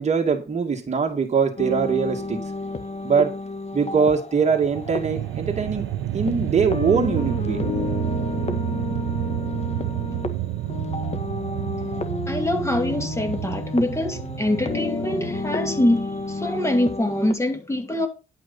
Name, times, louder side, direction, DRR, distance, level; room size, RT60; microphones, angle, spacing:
voice 1, 0.0-2.4 3.0-3.3 3.7-5.9 6.1-7.6, right 5 dB, 35° right, 2.4 m, -22 dB
sound 1, 1.6-17.3, left 3 dB, 35° left, 1.6 m, -31 dB
sound 2, 4.4-16.8, right 14 dB, 80° right, 1.0 m, -30 dB
voice 2, 12.3-18.1, left 1 dB, 15° left, 2.6 m, -24 dB
11.0 x 5.8 x 5.6 m
cardioid pair, 90°, 20 cm